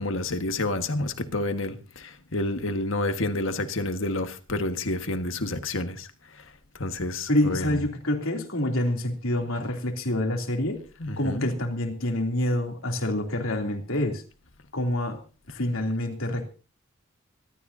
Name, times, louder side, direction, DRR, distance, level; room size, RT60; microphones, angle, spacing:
voice 1, 0.0-6.1 6.8-7.7 11.0-11.5, left 2 dB, 70° left, 1.6 m, -29 dB
voice 2, 7.3-10.8 11.2-14.2 14.7-15.2 15.5-16.5, left 1 dB, 90° left, 3.1 m, -27 dB
25.5 x 13.0 x 2.8 m
head